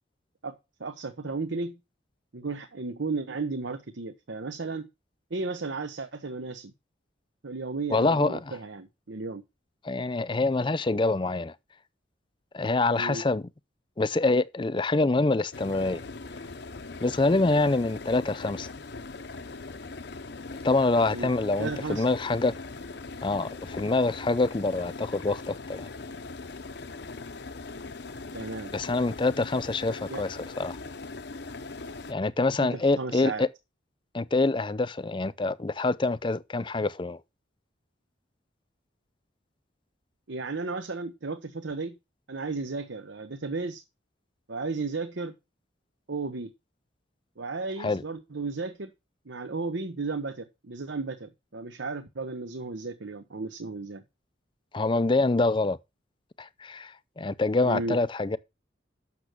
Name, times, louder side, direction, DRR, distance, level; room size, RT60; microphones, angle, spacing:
voice 1, 0.4-1.8 2.3-4.9 5.3-6.7 7.4-9.4 13.0-13.3 21.1-21.3 21.6-22.1 28.3-28.7 30.1-30.2 32.6-33.4 40.3-42.0 42.3-43.8 44.5-45.3 46.1-46.5 47.4-48.9 49.3-54.0 57.6-58.0, right 3 dB, 70° right, 0.9 m, -34 dB
voice 2, 7.9-8.5 9.8-11.5 12.5-13.4 14.0-16.0 17.0-18.7 20.6-22.5 23.2-25.9 28.7-30.8 32.1-33.5 34.1-37.2 47.8-48.0 54.7-55.8 56.4-58.4, left 3 dB, 25° left, 0.5 m, -26 dB
sound 1, 15.5-32.1, left 3 dB, 55° left, 0.8 m, -40 dB
8.4 x 6.6 x 6.1 m
head